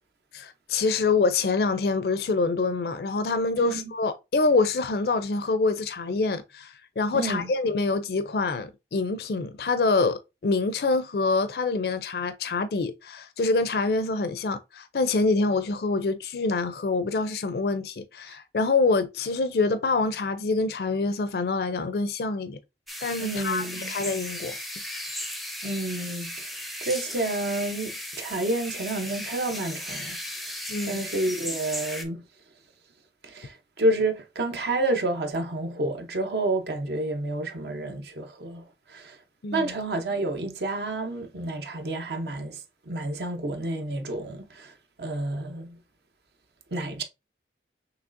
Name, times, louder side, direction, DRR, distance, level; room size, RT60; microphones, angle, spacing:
voice 1, 0.3-22.6 23.0-24.6 30.7-31.0 39.4-39.7, left 3 dB, 60° left, 0.4 m, -26 dB
voice 2, 3.6-3.9 7.1-7.5 23.2-23.9 25.6-26.6 26.8-30.2 30.8-32.2 33.2-39.2 39.5-44.7 45.0-45.8 46.7-47.0, right 2 dB, 65° right, 0.7 m, -29 dB
sound 1, 22.9-32.0, equal, ahead, 0.5 m, -36 dB
6.0 x 3.1 x 2.5 m
head